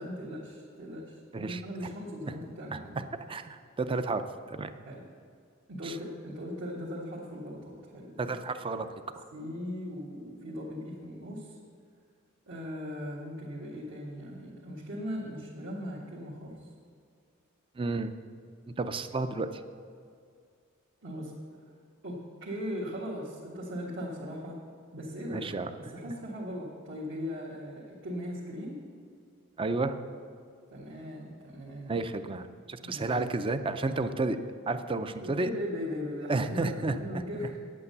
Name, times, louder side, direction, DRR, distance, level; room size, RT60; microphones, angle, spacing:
voice 1, 0.0-3.0 4.8-5.1 5.7-8.4 9.3-11.6 12.5-16.7 21.0-21.3 22.0-24.6 24.9-25.5 25.8-28.8 30.7-32.0 32.8-33.2 35.2-37.6, equal, 65° right, -6 dB, 1.7 m, -39 dB
voice 2, 3.3-4.2 4.5-4.7 5.8-6.0 8.2-9.2 17.8-18.1 18.7-19.6 25.3-25.9 29.6-30.0 31.9-34.4 34.7-35.5 36.3-37.0, right 3 dB, 25° right, 10 dB, 0.5 m, -31 dB
9.4 x 8.4 x 6.7 m, 2.3 s
head